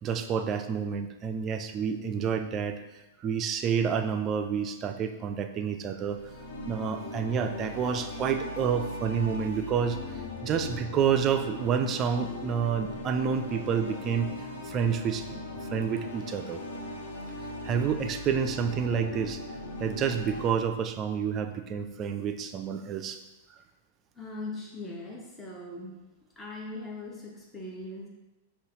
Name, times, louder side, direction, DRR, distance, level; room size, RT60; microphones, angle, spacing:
voice 1, 0.0-2.8 3.2-6.2 6.7-14.3 14.6-15.4 15.7-16.6 17.6-19.4 19.8-23.2, right 7 dB, 30° right, 7 dB, 0.4 m, -29 dB
sound 1, 6.0-20.5, left 2 dB, 60° left, 0.7 m, -39 dB
voice 2, 24.1-26.0 26.4-28.1, left 2 dB, 15° left, -2 dB, 0.8 m, -40 dB
5.4 x 2.4 x 3.8 m, 1.1 s
figure-of-eight pair, 100°, 0 cm